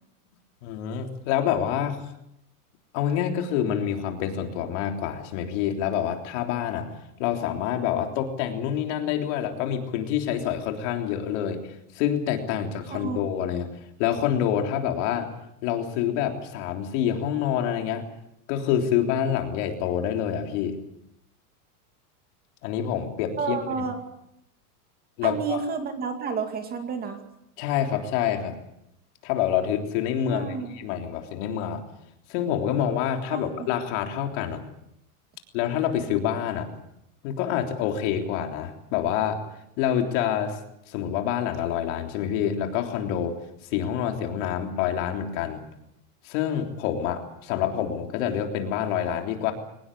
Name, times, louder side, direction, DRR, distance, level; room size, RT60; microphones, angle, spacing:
voice 1, 0.6-2.0 2.9-6.9 7.2-13.7 14.0-15.3 15.6-18.1 18.5-20.8 22.6-23.6 25.2-25.6 27.6-28.6 29.2-31.8 32.3-34.6 35.5-36.7 37.2-39.4 39.8-40.6 40.9-43.4 43.7-45.6 46.2-49.5, left 9 dB, 50° left, 4 dB, 3.5 m, -27 dB
voice 2, 12.9-13.2 23.4-24.0 25.2-27.2 30.3-30.8 33.3-33.7, right 5 dB, 20° right, 6 dB, 2.4 m, -30 dB
23.0 x 19.5 x 8.5 m, 0.81 s
supercardioid pair, 160°, 46 cm